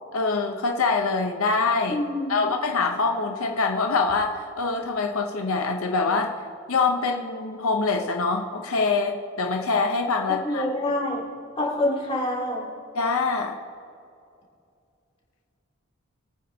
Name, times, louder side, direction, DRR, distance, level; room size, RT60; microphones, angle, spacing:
voice 1, 0.1-2.0 2.3-6.3 6.7-10.6 12.9-13.6, left 4 dB, 80° left, 3 dB, 0.8 m, -24 dB
voice 2, 1.9-2.5 10.4-11.2 11.6-12.6, left 1 dB, 25° left, -4 dB, 2.9 m, -26 dB
23.5 x 9.5 x 2.8 m, 2.5 s
head